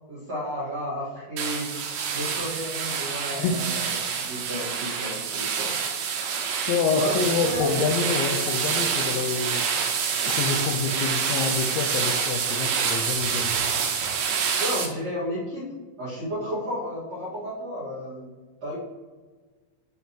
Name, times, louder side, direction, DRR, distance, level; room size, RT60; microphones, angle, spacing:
voice 1, 0.1-1.8 2.1-4.0 4.3-5.8 6.9-7.9 14.6-15.7 16.0-18.3 18.6-18.8, equal, 60° right, -11 dB, 1.7 m, -32 dB
sound 1, 1.4-14.9, right 6 dB, 80° right, 2.6 m, -27 dB
voice 2, 6.7-9.7 10.3-13.6, left 5 dB, 85° left, 2 dB, 2.6 m, -27 dB
10.0 x 3.5 x 2.9 m, 1.4 s
omnidirectional pair, 5.7 m